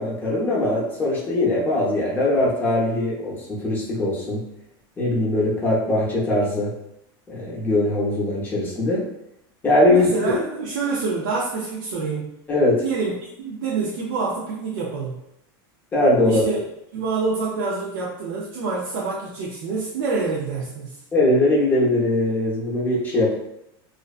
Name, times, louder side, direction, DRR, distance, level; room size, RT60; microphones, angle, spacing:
voice 1, 0.0-4.4 5.0-6.7 7.3-9.0 9.6-10.4 12.5-12.8 15.9-16.5 21.1-23.3, left 1 dB, 15° left, -6 dB, 0.7 m, -21 dB
voice 2, 9.9-12.3 12.8-15.2 16.2-16.6 16.9-20.9, right 4 dB, 75° right, -5 dB, 0.5 m, -27 dB
2.5 x 2.1 x 2.4 m, 0.83 s
supercardioid pair, 150°, 13 cm